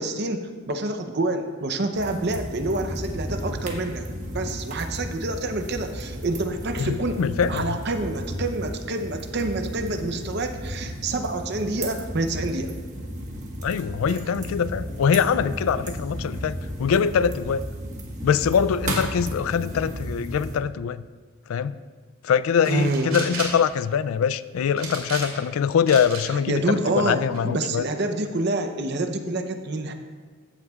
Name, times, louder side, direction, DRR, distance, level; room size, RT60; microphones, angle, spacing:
voice 1, 0.0-4.1 4.3-7.2 7.5-12.8 22.7-23.2 26.3-29.9, right 2 dB, 50° right, 7 dB, 0.7 m, -27 dB
sound 1, 1.9-20.6, equal, 35° right, 1.4 m, -34 dB
voice 2, 6.8-7.8 13.6-17.6 18.2-21.0 21.5-21.7 22.2-27.8, left 7 dB, 80° left, 16 dB, 0.3 m, -23 dB
sound 2, 22.6-23.6 24.8-25.5 25.9-26.2 26.8-27.4, right 4 dB, 80° right, 2.5 m, -34 dB
15.0 x 7.9 x 2.4 m, 1.5 s
head